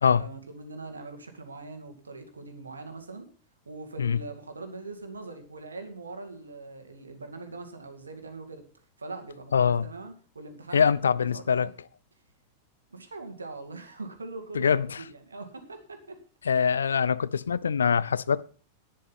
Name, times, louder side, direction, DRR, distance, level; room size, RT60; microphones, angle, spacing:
voice 1, 0.1-3.3 3.7-8.6 9.0-11.7 12.9-16.2 16.5-16.7, right 3 dB, 75° right, 2.1 m, -42 dB
voice 2, 9.5-9.9 10.7-11.7 14.5-15.0 16.4-18.4, left 6 dB, 70° left, 0.5 m, -24 dB
11.0 x 10.0 x 5.7 m
figure-of-eight pair, 90°, 0 cm